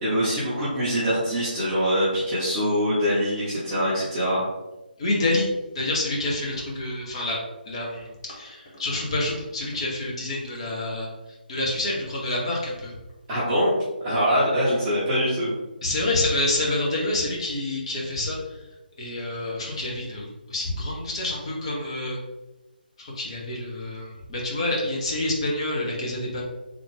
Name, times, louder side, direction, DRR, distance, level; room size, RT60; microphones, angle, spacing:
voice 1, 0.0-4.4 13.3-13.7 14.0-15.5, equal, 10° right, -12 dB, 0.8 m, -23 dB
voice 2, 5.0-5.5 5.7-7.4 7.7-12.9 15.8-18.7 19.0-22.2 23.0-26.4, left 2 dB, 30° left, -3 dB, 0.8 m, -28 dB
3.5 x 2.4 x 3.3 m, 1.0 s
figure-of-eight pair, 150°, 5 cm